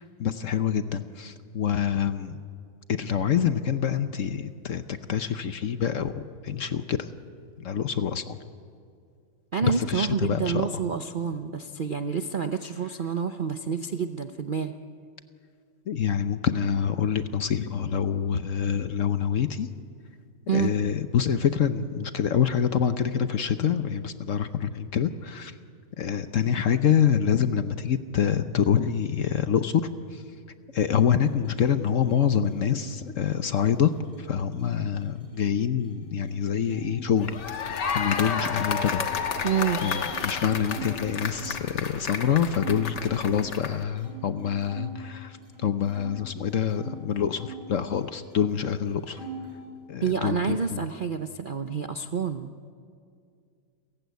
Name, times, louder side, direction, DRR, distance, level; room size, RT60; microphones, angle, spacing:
voice 1, 0.2-2.4 2.9-6.1 6.4-7.1 7.6-8.4 9.6-10.7 15.9-19.7 20.5-25.5 26.0-29.8 30.1-30.2 30.7-39.0 39.8-49.2 49.9-50.8, left 8 dB, 55° left, 10 dB, 1.0 m, -26 dB
voice 2, 9.5-14.7 20.5-20.7 39.4-39.8 50.0-52.5, right 6 dB, 50° right, 7 dB, 0.6 m, -28 dB
sound 1, 31.1-36.8 37.1-38.2 38.7-41.6 42.1-42.2 42.5-44.9 45.3-46.9 47.3-48.4 48.7-49.6, right 3 dB, 75° right, 8.2 m, -45 dB
sound 2, 37.2-43.8, left 6 dB, 80° left, 2.0 m, -31 dB
30.0 x 15.0 x 9.4 m, 2.3 s
omnidirectional pair, 1.9 m